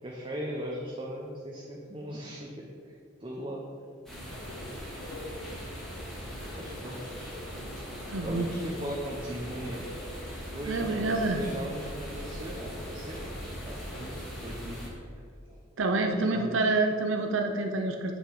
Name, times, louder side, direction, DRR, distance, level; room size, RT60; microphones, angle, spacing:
voice 1, 0.0-3.6 6.5-7.3 8.2-9.8 10.5-13.2 13.5-14.1 14.4-15.2 16.1-16.8, right 1 dB, 25° right, -2 dB, 0.8 m, -39 dB
sound 1, 4.1-14.9, equal, ahead, 1.7 m, -41 dB
sound 2, 4.3-14.2, left 1 dB, 85° left, 1.9 m, -46 dB
voice 2, 8.1-8.5 10.7-11.4 15.8-18.2, right 2 dB, 80° right, 4 dB, 0.7 m, -27 dB
8.2 x 6.3 x 4.9 m, 2.4 s
head